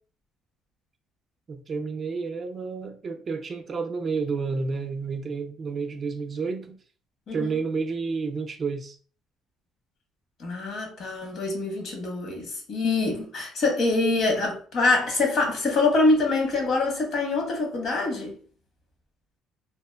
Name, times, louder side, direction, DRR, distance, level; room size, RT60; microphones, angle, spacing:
voice 1, 1.5-6.8 7.3-9.0, right 4 dB, 40° right, 0.4 m, -30 dB
voice 2, 10.4-18.4, left 3 dB, 60° left, 1.0 m, -25 dB
2.8 x 2.1 x 2.3 m
supercardioid pair, 85°, 0 cm